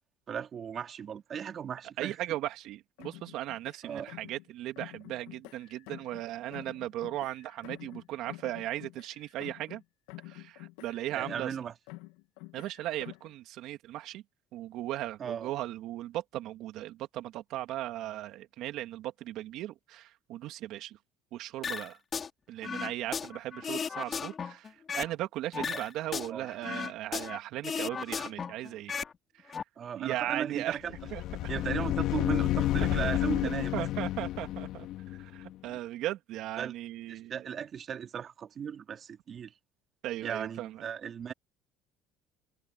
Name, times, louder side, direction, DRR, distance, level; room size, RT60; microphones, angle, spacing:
voice 1, 0.3-2.4 3.8-4.1 11.1-11.7 15.2-15.5 25.7-25.8 26.3-26.5 29.8-30.9 31.5-33.8 36.6-36.7 37.1-39.5 40.2-41.3, right 8 dB, 40° right, 2.5 m, -36 dB
voice 2, 2.0-9.8 10.2-11.5 12.5-14.2 14.5-21.0 21.3-22.0 22.5-29.0 29.4-29.6 29.9-30.8 31.1-31.2 32.8-33.1 33.4-34.9 35.2-37.4 40.0-40.9, right 14 dB, 65° right, 2.8 m, -37 dB
sound 1, 3.0-4.5 4.8-6.3 6.5-9.8 10.1-11.6 11.9-13.3, left 21 dB, 85° left, 2.1 m, -48 dB
sound 2, 21.6-22.3 22.6-25.2 25.5-27.4 27.6-29.1 29.4-29.6, left 6 dB, 35° left, 3.8 m, -35 dB
sound 3, 30.9-35.5, left 14 dB, 65° left, 1.9 m, -31 dB
supercardioid pair, 105°, 0 cm